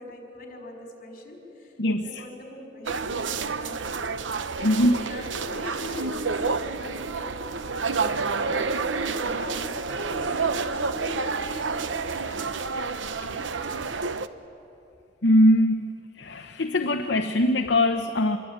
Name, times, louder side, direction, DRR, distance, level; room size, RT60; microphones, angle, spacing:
voice 1, 0.0-14.0, left 1 dB, 50° left, 3 dB, 5.0 m, -41 dB
sound 1, 2.9-14.3, right 4 dB, 85° right, 0.9 m, -29 dB
voice 2, 4.6-4.9 15.2-15.9 16.2-18.4, left 1 dB, 70° left, 5 dB, 1.0 m, -21 dB
26.0 x 22.0 x 8.9 m, 2.8 s
head